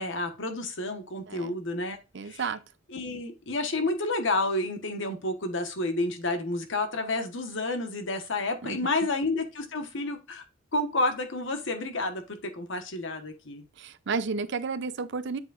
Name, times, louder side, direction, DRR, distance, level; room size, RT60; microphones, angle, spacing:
voice 1, 0.0-2.0 2.2-2.4 2.9-10.4 10.7-13.6, left 2 dB, 65° left, 1.3 m, -30 dB
voice 2, 2.1-2.6 8.6-8.8 13.8-15.4, right 5 dB, 60° right, 0.6 m, -32 dB
8.1 x 4.8 x 2.5 m
head